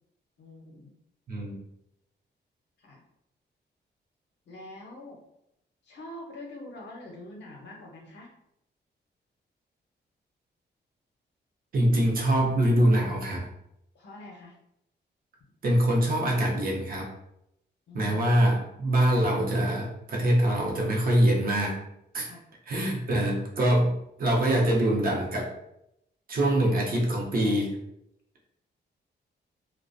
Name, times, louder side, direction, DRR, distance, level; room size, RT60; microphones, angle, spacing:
voice 1, 0.4-0.9 2.8-3.0 4.5-5.2 5.8-8.3 13.9-14.5 17.9-18.2 22.2-22.5, left 1 dB, 70° left, 0 dB, 0.6 m, -44 dB
voice 2, 11.7-13.5 15.6-17.1 17.9-21.8 22.1-22.3 22.7-25.5 26.3-27.8, right 1 dB, 50° right, -1 dB, 0.6 m, -24 dB
2.3 x 2.1 x 2.4 m, 0.79 s
wide cardioid pair, 155°, 19 cm